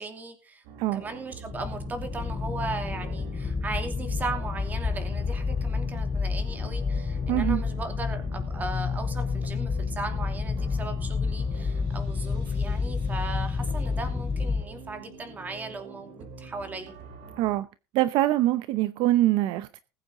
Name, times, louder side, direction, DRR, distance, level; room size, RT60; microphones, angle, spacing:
voice 1, 0.0-0.6 0.9-16.9, right 3 dB, 20° right, 2.8 m, -37 dB
sound 1, 0.6-17.6, right 4 dB, 80° right, 6.3 m, -45 dB
sound 2, 1.5-14.6, left 5 dB, 15° left, 0.8 m, -29 dB
voice 2, 7.3-7.6 17.4-17.7 17.9-19.8, right 15 dB, 60° right, 0.7 m, -24 dB
20.0 x 8.6 x 3.8 m
cardioid pair, 155°, 9 cm